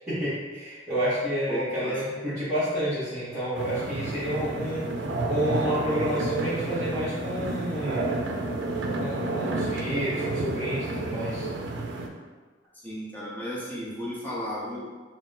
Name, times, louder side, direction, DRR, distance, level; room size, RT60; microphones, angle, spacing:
voice 1, 0.1-4.8 5.2-8.3 9.0-11.5, equal, 10° right, -17 dB, 1.3 m, -30 dB
voice 2, 1.5-1.9 12.8-14.9, equal, 10° left, -7 dB, 0.9 m, -34 dB
sound 1, 3.5-12.1, right 2 dB, 65° right, 0.4 m, -30 dB
4.1 x 2.1 x 4.0 m, 1.4 s
head